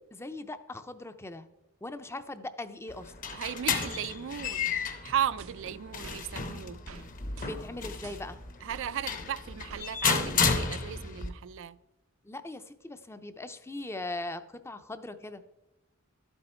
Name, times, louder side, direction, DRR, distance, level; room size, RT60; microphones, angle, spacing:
voice 1, 0.1-1.5 1.8-3.1 7.4-8.4 12.2-15.4, left 2 dB, 10° left, 0.5 m, -40 dB
sound 1, 2.9-11.3, left 5 dB, 40° left, 0.9 m, -32 dB
voice 2, 3.3-4.8 5.0-6.8 8.6-11.8, right 9 dB, 65° right, 0.4 m, -35 dB
sound 2, 5.4-6.2 6.9-7.1 7.4-8.9 9.7-10.5, right 3 dB, 85° right, 0.8 m, -48 dB
12.0 x 7.9 x 4.4 m
head